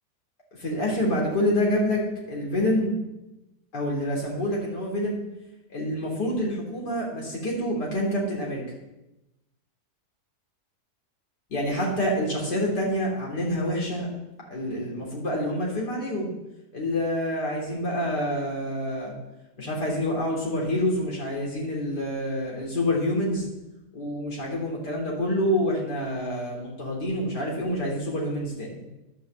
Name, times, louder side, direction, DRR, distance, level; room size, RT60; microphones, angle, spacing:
voice 1, 0.6-2.0 2.3-2.9 3.7-5.2 5.7-8.6 11.5-14.1 14.5-16.3 16.7-19.1 19.6-23.5 23.9-28.8, left 1 dB, 85° left, -3 dB, 3.8 m, -27 dB
12.5 x 9.2 x 7.5 m, 0.96 s
omnidirectional pair, 1.7 m